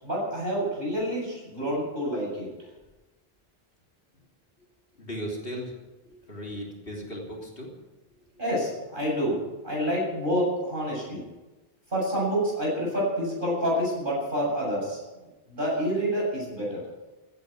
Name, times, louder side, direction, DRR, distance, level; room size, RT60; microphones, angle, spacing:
voice 1, 0.0-2.5 8.4-11.2 11.9-15.0 15.5-16.8, equal, 55° right, -4 dB, 8.1 m, -28 dB
voice 2, 5.0-5.7 6.3-7.7, equal, 65° left, -1 dB, 3.5 m, -36 dB
15.5 x 10.5 x 8.5 m, 1.1 s
omnidirectional pair, 1.0 m